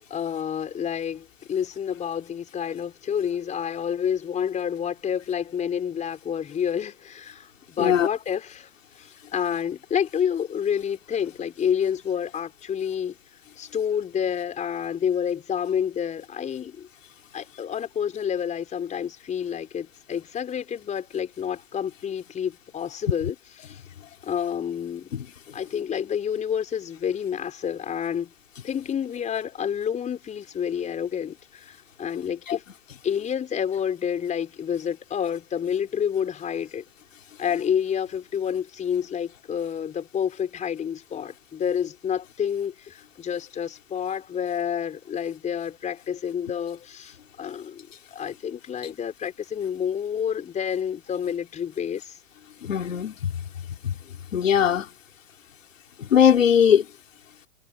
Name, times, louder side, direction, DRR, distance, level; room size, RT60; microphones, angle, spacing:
voice 1, 0.1-8.7 9.0-13.2 13.6-16.9 17.3-23.3 23.6-23.8 24.2-25.1 25.5-28.3 28.6-32.6 33.0-36.8 37.4-52.2, left 8 dB, 20° left, 4.9 m, -29 dB
voice 2, 52.6-53.1 53.8-53.9 54.3-54.9 56.0-56.9, left 8 dB, 85° left, 4.0 m, -19 dB
hypercardioid pair, 130°, 38 cm